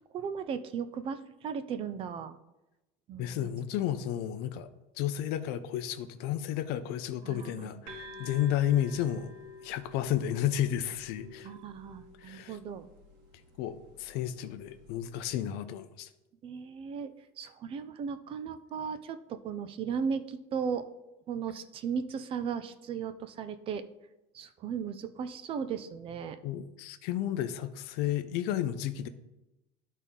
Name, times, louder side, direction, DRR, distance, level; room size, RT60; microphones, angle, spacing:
voice 1, 0.1-2.4 3.1-3.5 7.2-8.3 11.4-12.9 16.4-20.9 21.3-23.8 24.3-26.4, right 6 dB, 30° right, 10 dB, 0.4 m, -36 dB
voice 2, 3.2-4.7 5.0-9.3 9.6-11.5 12.2-12.6 13.6-16.1 26.4-29.1, left 11 dB, 55° left, 11 dB, 0.6 m, -32 dB
sound 1, 7.9-15.4, left 2 dB, 70° right, 2.1 m, -51 dB
12.0 x 4.1 x 3.7 m, 0.97 s
cardioid pair, 175°, 19 cm